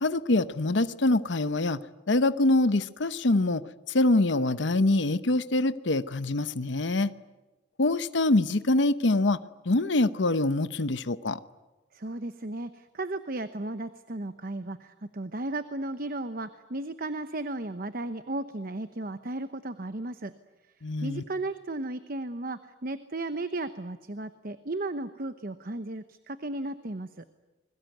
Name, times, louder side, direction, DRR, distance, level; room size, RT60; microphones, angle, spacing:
voice 1, 0.0-1.8 2.1-7.1 7.8-9.4 9.6-11.4 20.8-21.2, left 2 dB, 70° left, 0.9 m, -25 dB
voice 2, 11.9-20.3 21.0-27.2, right 2 dB, 50° right, 1.0 m, -35 dB
29.0 x 22.0 x 9.3 m
head